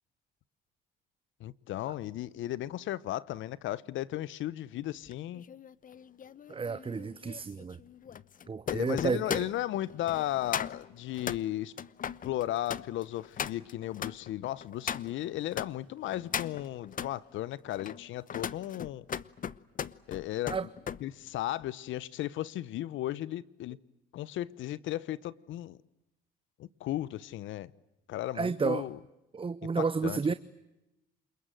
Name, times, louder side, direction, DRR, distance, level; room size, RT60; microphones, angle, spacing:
voice 1, 1.4-5.4 8.7-11.7 12.2-19.0 20.1-20.6 21.0-23.8 24.1-25.8 26.6-27.7 28.1-29.0 29.8-30.3, left 14 dB, 70° left, 0.9 m, -35 dB
sound 1, 5.1-15.7 16.1-17.1 17.7-21.0 21.4-21.7, left 8 dB, 40° left, 0.9 m, -39 dB
voice 2, 6.5-7.8 8.5-9.5 20.5-20.7 28.3-28.9 29.3-30.3, right 5 dB, 25° right, 0.9 m, -31 dB
28.5 x 21.0 x 9.2 m
supercardioid pair, 75°, 21 cm